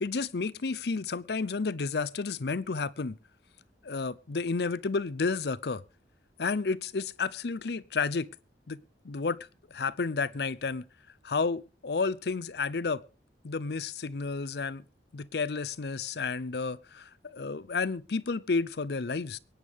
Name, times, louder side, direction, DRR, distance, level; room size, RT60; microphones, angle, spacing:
voice 1, 0.0-3.2 3.8-5.8 6.4-8.3 8.7-9.4 9.7-10.8 11.2-13.0 13.4-14.8 15.1-19.4, left 4 dB, 65° left, 0.6 m, -31 dB
23.5 x 9.6 x 3.5 m
head